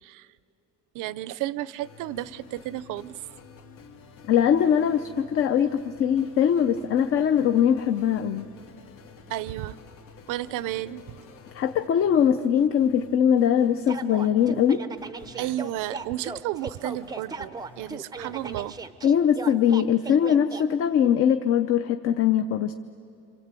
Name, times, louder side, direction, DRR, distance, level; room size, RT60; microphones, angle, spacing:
voice 1, 0.9-3.2 9.3-9.8 10.3-11.3 15.4-18.8, right 14 dB, 75° right, 18 dB, 0.7 m, -32 dB
sound 1, 1.8-18.9, left 4 dB, 85° left, 2.6 m, -50 dB
voice 2, 4.3-8.5 11.5-14.8 19.0-22.7, left 9 dB, 45° left, 8 dB, 0.7 m, -21 dB
sound 2, 13.9-20.6, right 4 dB, 10° right, 0.5 m, -37 dB
26.5 x 26.0 x 8.3 m, 2.5 s
cardioid pair, 175°, 32 cm